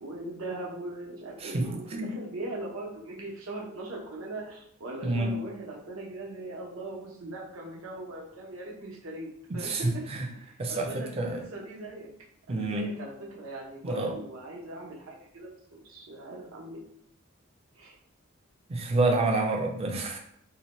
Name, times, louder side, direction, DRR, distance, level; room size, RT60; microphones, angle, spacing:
voice 1, 0.0-10.0 10.3-12.1 12.5-16.8 17.7-17.9, right 2 dB, 80° right, -2 dB, 0.7 m, -40 dB
voice 2, 1.4-2.1 5.0-5.3 9.6-10.3 10.6-11.4 12.5-12.9 13.8-14.2 18.7-20.2, right 2 dB, 30° right, 2 dB, 0.4 m, -28 dB
2.7 x 2.1 x 2.9 m, 0.69 s
head